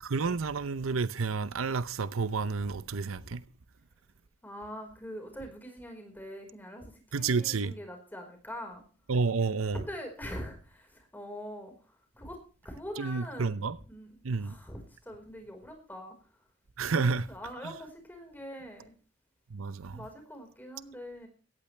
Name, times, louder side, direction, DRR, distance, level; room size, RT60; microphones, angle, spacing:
voice 1, 0.0-3.5 7.1-7.7 9.1-9.8 13.0-13.8 14.2-14.6 16.8-17.3 17.6-17.7 19.5-20.1, right 4 dB, 85° right, 0.7 m, -30 dB
voice 2, 4.4-6.9 7.1-8.8 9.7-11.7 12.1-12.4 12.6-16.1 16.9-18.9 19.9-21.3, equal, 10° left, 4.6 m, -43 dB
17.0 x 14.5 x 3.3 m
head